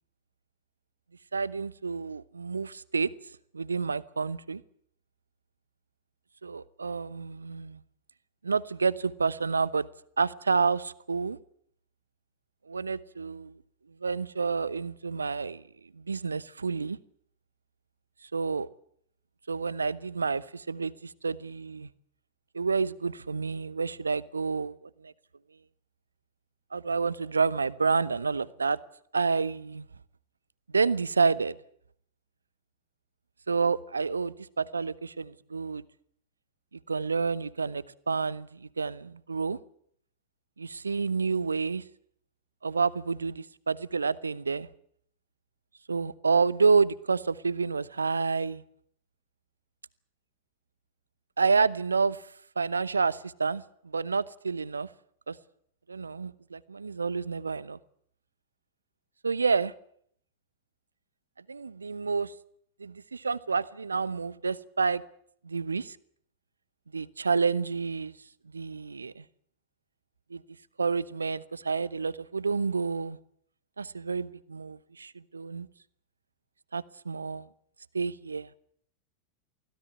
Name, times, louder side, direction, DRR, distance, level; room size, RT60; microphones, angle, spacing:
voice 1, 1.3-3.1 3.5-4.6 6.4-7.8 8.4-9.9 10.2-11.4 12.7-13.6 14.0-15.6 16.0-17.0 18.3-18.7 19.5-21.9 22.5-24.8 25.0-25.1 26.7-28.8 29.1-29.9 30.7-31.6 33.5-35.8 36.9-39.6 40.6-41.8 42.6-44.7 45.9-48.6 51.4-52.2 52.6-54.9 55.3-55.4 55.9-57.8 59.2-59.7 61.5-62.3 62.8-65.0 65.4-66.0 66.9-68.1 68.5-69.2 70.3-70.4 70.8-73.2 73.8-75.7 76.7-77.5 77.9-78.5, right 4 dB, 75° right, 0.8 m, -29 dB
24.5 x 16.5 x 8.5 m
figure-of-eight pair, 90°, 0 cm